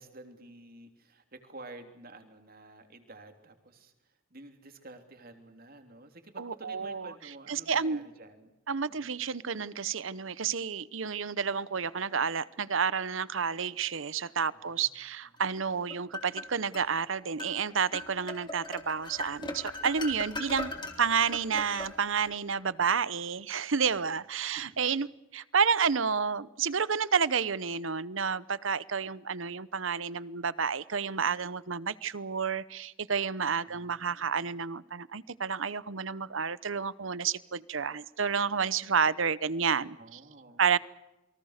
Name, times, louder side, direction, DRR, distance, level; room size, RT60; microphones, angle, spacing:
voice 1, 0.0-8.5 8.9-9.1 14.5-14.9 20.6-21.0 23.9-24.2 24.5-24.6 33.6-34.4 40.0-40.6, right 2 dB, 45° right, 6 dB, 3.2 m, -51 dB
voice 2, 6.4-7.1 7.5-8.1 8.7-20.7 21.0-25.1 25.3-40.0 40.6-40.8, right 6 dB, 70° right, 18 dB, 0.9 m, -30 dB
sound 1, 15.6-16.9 17.4-17.6 17.9-22.4, left 2 dB, 20° left, 3.6 m, -40 dB
28.5 x 23.5 x 6.6 m, 0.97 s
head